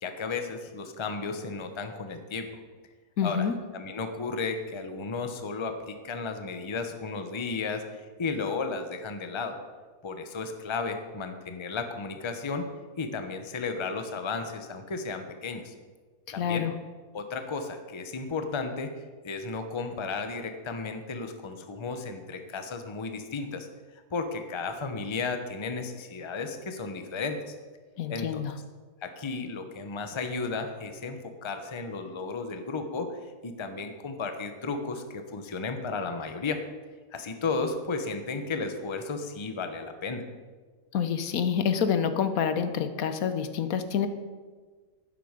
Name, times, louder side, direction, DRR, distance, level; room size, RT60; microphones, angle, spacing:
voice 1, 0.0-2.6 3.2-9.6 10.0-12.6 13.0-15.7 16.3-16.7 17.1-18.9 19.2-23.7 24.1-27.5 28.1-28.4 29.0-36.6 37.1-40.2, left 4 dB, 25° left, 7 dB, 0.7 m, -34 dB
voice 2, 3.2-3.5 16.3-16.7 28.0-28.5 40.9-44.1, left 7 dB, 70° left, 10 dB, 1.2 m, -27 dB
11.5 x 9.4 x 5.1 m, 1.5 s
omnidirectional pair, 1.6 m